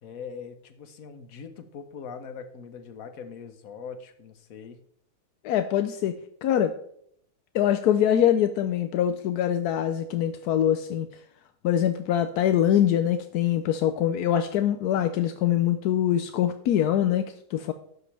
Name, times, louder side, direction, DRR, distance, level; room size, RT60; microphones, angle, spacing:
voice 1, 0.0-4.8, left 6 dB, 65° left, 9 dB, 1.4 m, -41 dB
voice 2, 5.4-6.8 7.5-11.1 11.6-17.7, left 10 dB, 80° left, 9 dB, 1.2 m, -24 dB
12.0 x 8.3 x 3.3 m, 0.67 s
omnidirectional pair, 1.7 m